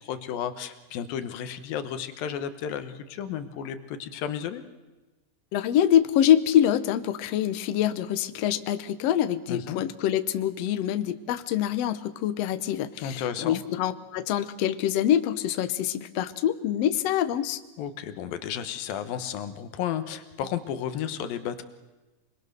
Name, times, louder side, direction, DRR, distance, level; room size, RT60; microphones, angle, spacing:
voice 1, 0.0-4.6 9.5-9.8 13.0-13.6 17.8-21.6, left 9 dB, 90° left, 10 dB, 3.0 m, -33 dB
voice 2, 5.5-17.6, left 10 dB, 70° left, 11 dB, 1.6 m, -25 dB
27.0 x 21.0 x 6.7 m, 1.2 s
omnidirectional pair, 3.9 m